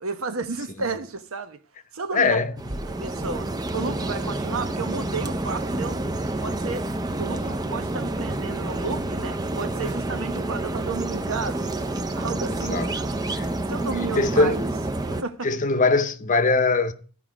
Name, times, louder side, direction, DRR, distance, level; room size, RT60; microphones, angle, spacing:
voice 1, 0.0-1.6 1.9-2.4 3.0-6.0 6.4-6.9 7.2-11.7 12.2-13.2 13.7-14.7 15.1-15.5, right 4 dB, 85° right, 1.0 m, -32 dB
voice 2, 2.1-2.5 12.5-12.9 13.3-14.6 15.4-16.9, left 3 dB, 40° left, 0.8 m, -22 dB
sound 1, 2.6-15.2, right 2 dB, 20° right, 0.5 m, -28 dB
14.0 x 5.0 x 5.0 m
head